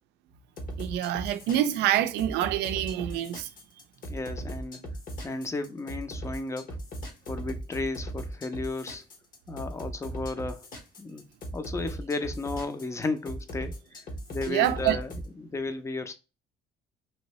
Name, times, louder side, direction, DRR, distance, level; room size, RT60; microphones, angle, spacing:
sound 1, 0.6-15.3, right 1 dB, 55° left, 1.0 m, -38 dB
voice 1, 0.8-3.5 14.5-15.0, right 12 dB, 85° right, 0.4 m, -26 dB
voice 2, 4.1-4.8 5.2-6.8 7.3-9.0 9.5-10.7 11.0-11.2 11.5-15.1 15.4-16.1, left 3 dB, 15° left, 0.5 m, -34 dB
3.0 x 2.6 x 3.0 m
cardioid pair, 110°, 17 cm